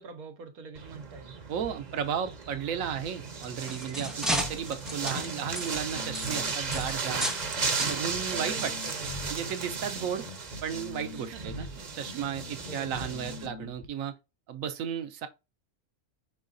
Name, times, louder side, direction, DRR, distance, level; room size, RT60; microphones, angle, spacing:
voice 1, 0.0-1.3 4.0-4.2 5.2-5.8 8.3-9.3 11.1-11.8 12.1-13.4, right 4 dB, 90° right, 1.4 m, -45 dB
sound 1, 0.7-13.5, right 5 dB, 40° right, 0.7 m, -36 dB
voice 2, 1.5-7.3 7.8-8.7 9.3-10.2 10.6-11.7 11.9-14.1 14.5-15.3, right 8 dB, 70° right, 1.0 m, -34 dB
sound 2, 3.3-7.5 7.8-8.0 8.7-8.8 9.3-9.4, equal, ahead, 0.4 m, -34 dB
sound 3, 4.3-13.9, left 4 dB, 50° left, 0.6 m, -43 dB
5.5 x 3.8 x 2.5 m
omnidirectional pair, 1.5 m